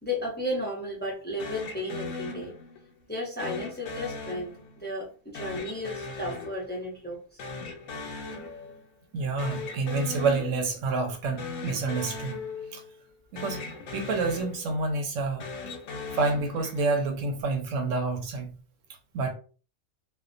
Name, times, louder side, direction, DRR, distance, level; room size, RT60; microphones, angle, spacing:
voice 1, 0.0-2.6 3.1-7.4, left 1 dB, 10° left, 0.6 m, -34 dB
sound 1, 1.4-2.9 3.4-4.9 5.3-7.1 7.4-8.9 9.2-10.9 11.3-13.1 13.4-14.9 15.3-17.1, left 4 dB, 85° left, 0.9 m, -39 dB
voice 2, 9.1-12.4 12.7-12.8 13.3-13.6 13.9-15.5 16.1-18.5 19.1-19.3, right 3 dB, 90° right, 1.0 m, -28 dB
2.4 x 2.1 x 2.5 m
omnidirectional pair, 1.3 m